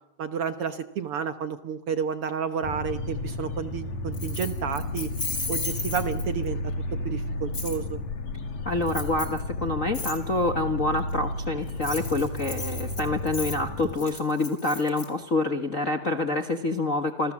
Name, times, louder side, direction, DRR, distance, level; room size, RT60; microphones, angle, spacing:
voice 1, 0.2-5.1 5.5-6.6 6.9-8.0, right 7 dB, 60° right, 9 dB, 1.7 m, -31 dB
sound 1, 2.6-14.0, left 2 dB, 70° left, 3.4 m, -33 dB
Keys jangling, 4.1-6.5 7.5-7.8 8.9-9.4 9.9-10.2 11.7-15.1, left 3 dB, 20° left, 3.6 m, -35 dB
voice 2, 8.6-17.3, left 2 dB, 40° left, 5 dB, 1.2 m, -27 dB
28.0 x 27.0 x 7.4 m, 0.89 s
omnidirectional pair, 3.5 m